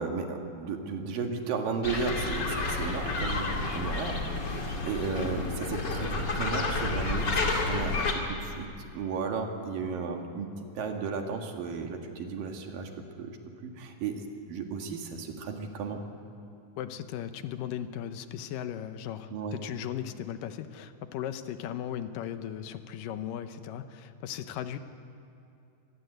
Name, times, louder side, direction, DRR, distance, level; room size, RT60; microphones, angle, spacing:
voice 1, 0.0-8.7 8.9-12.9 13.2-13.4 13.6-16.0 19.3-19.6, right 5 dB, 85° right, 3 dB, 3.7 m, -34 dB
sound 1, 1.8-8.1, left 3 dB, 35° left, 2.8 m, -30 dB
voice 2, 16.8-24.8, left 10 dB, 80° left, 10 dB, 2.6 m, -37 dB
25.0 x 20.0 x 8.1 m, 2.6 s
omnidirectional pair, 3.9 m